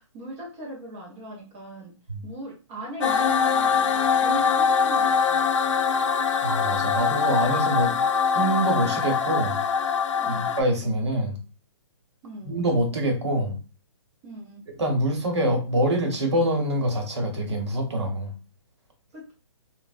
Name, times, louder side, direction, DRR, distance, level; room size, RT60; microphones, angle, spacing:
voice 1, 0.0-1.9 2.2-5.5 10.2-10.6 12.2-12.6 14.2-14.6 19.1-19.3, right 1 dB, 15° right, -5 dB, 0.5 m, -39 dB
sound 1, 3.0-10.6, left 6 dB, 80° left, 0.4 m, -23 dB
voice 2, 6.4-7.9 8.3-9.6 10.2-11.4 12.4-13.6 14.8-18.3, right 1 dB, 65° right, 3 dB, 0.9 m, -25 dB
3.2 x 2.1 x 2.4 m, 0.34 s
hypercardioid pair, 170°, 16 cm